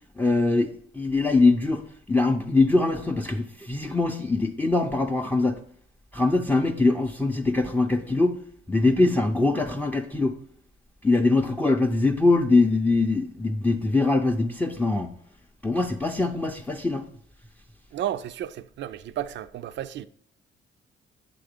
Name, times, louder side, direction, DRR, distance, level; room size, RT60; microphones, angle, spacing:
voice 1, 0.2-5.6 6.1-8.4 8.7-10.4 11.0-15.1 15.6-17.0, left 3 dB, 10° left, 0.5 m, -23 dB
voice 2, 17.9-20.1, right 11 dB, 65° right, 0.4 m, -32 dB
7.7 x 3.8 x 5.1 m
cardioid pair, 90°, 20 cm